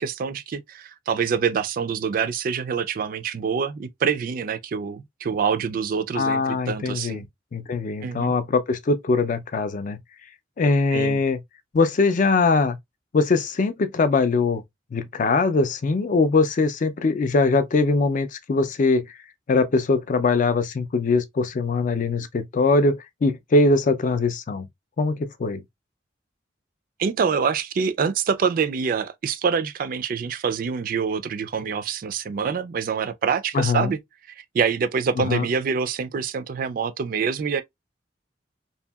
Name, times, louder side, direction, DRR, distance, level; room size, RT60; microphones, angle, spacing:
voice 1, 0.0-7.2 8.0-8.3 10.9-11.2 27.0-34.0 34.5-37.6, right 6 dB, 50° right, 0.3 m, -25 dB
voice 2, 6.1-7.2 7.5-10.0 10.6-11.4 11.7-12.8 13.1-14.6 14.9-19.0 19.5-24.7 25.0-25.6 33.5-33.9 35.3-35.5, left 3 dB, 45° left, 0.4 m, -21 dB
2.8 x 2.6 x 2.2 m
head